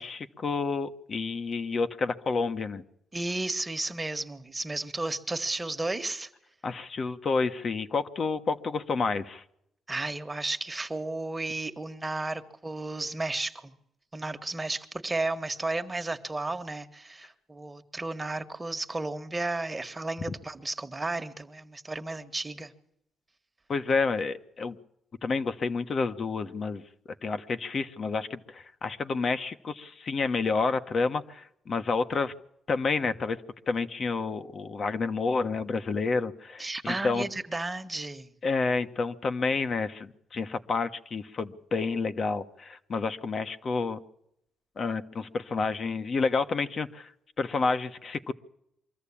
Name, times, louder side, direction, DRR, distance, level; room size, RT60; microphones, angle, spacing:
voice 1, 0.0-2.8 6.6-9.4 23.7-24.8 25.2-26.8 27.2-32.3 32.7-33.4 33.7-37.3 38.4-44.0 44.8-47.1 47.4-48.3, left 4 dB, 45° left, 1.3 m, -29 dB
voice 2, 3.1-6.3 9.9-13.7 14.1-22.7 36.6-38.3, right 2 dB, 20° right, 1.7 m, -33 dB
24.0 x 14.0 x 8.7 m
cardioid pair, 90°, 0 cm